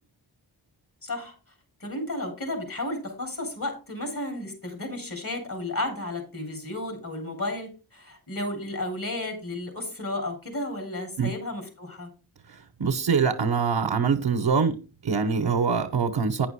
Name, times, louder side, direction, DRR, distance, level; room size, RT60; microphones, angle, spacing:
voice 1, 1.0-1.3 1.8-12.1, left 1 dB, 45° left, 4.2 m, -33 dB
voice 2, 12.8-14.8 15.0-16.5, right 5 dB, 65° right, 1.2 m, -24 dB
9.2 x 6.0 x 4.8 m
cardioid pair, 45°, 46 cm